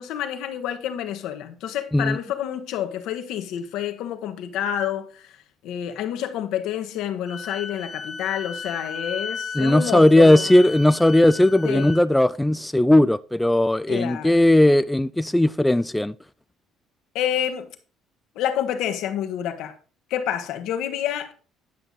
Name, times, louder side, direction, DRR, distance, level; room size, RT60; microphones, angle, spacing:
voice 1, 0.0-5.3 5.6-10.5 11.6-11.9 13.9-14.4 17.1-17.7 18.3-19.8 20.1-21.3, left 10 dB, 75° left, 1.2 m, -28 dB
Wind instrument woodwind instrument, 7.3-12.0, left 4 dB, 25° left, 1.0 m, -35 dB
voice 2, 9.6-16.1, left 1 dB, 5° left, 0.3 m, -17 dB
10.0 x 5.9 x 4.0 m
supercardioid pair, 85°, 0 cm